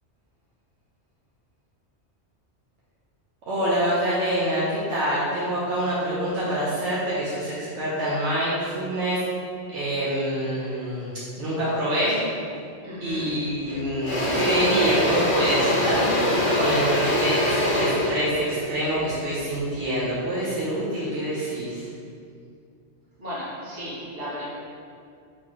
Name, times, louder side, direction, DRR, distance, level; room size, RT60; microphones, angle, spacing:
voice 1, 3.5-9.2 9.7-11.1 11.4-12.2 13.0-21.9, right 1 dB, 80° right, -9 dB, 1.1 m, -26 dB
voice 2, 12.8-13.3 23.2-24.5, equal, 55° right, -8 dB, 1.3 m, -35 dB
Engine / Drill, 13.1-13.3 13.7-19.8, left 1 dB, 65° left, 1.3 m, -24 dB
4.1 x 3.1 x 3.0 m, 2.3 s
omnidirectional pair, 1.2 m